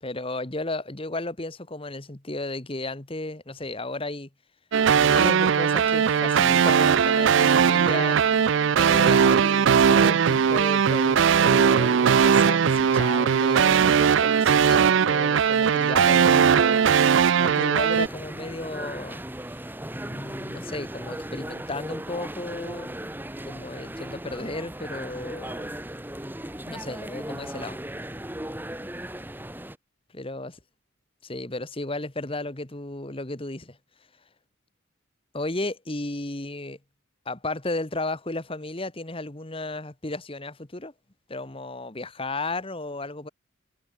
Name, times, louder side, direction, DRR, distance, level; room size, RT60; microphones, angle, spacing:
voice 1, 0.0-4.3 4.9-8.2 8.8-16.8 17.4-19.2 20.1-23.1 23.4-25.7 26.7-27.8 30.1-30.5 31.2-33.8 35.3-36.8 37.2-40.9 41.3-43.3, left 2 dB, 25° left, 1.4 m, -34 dB
sound 1, 4.7-18.1, right 7 dB, 60° right, 0.4 m, -19 dB
sound 2, 17.9-29.8, right 1 dB, 10° right, 2.4 m, -37 dB
head